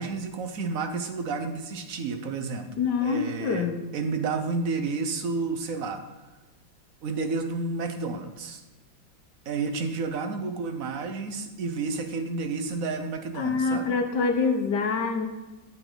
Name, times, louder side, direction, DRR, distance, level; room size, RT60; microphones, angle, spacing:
voice 1, 0.0-2.7 3.0-6.0 7.0-8.6 9.4-14.0, right 4 dB, 55° right, 7 dB, 1.1 m, -31 dB
voice 2, 2.8-3.8 13.4-15.3, left 4 dB, 65° left, 5 dB, 1.6 m, -25 dB
10.5 x 8.0 x 3.9 m, 1.2 s
omnidirectional pair, 2.1 m